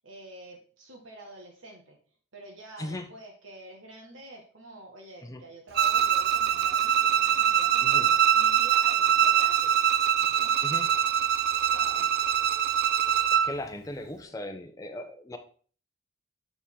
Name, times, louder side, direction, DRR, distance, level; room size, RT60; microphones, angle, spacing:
voice 1, 0.0-2.0 2.3-9.8 10.2-11.0 11.7-12.2 14.2-14.4, right 2 dB, 85° right, 0 dB, 1.5 m, -48 dB
Bowed string instrument, 5.7-13.5, right 9 dB, 55° right, 0.3 m, -23 dB
voice 2, 13.3-15.4, left 1 dB, 15° left, 6 dB, 0.8 m, -37 dB
6.8 x 4.7 x 3.7 m, 0.41 s
head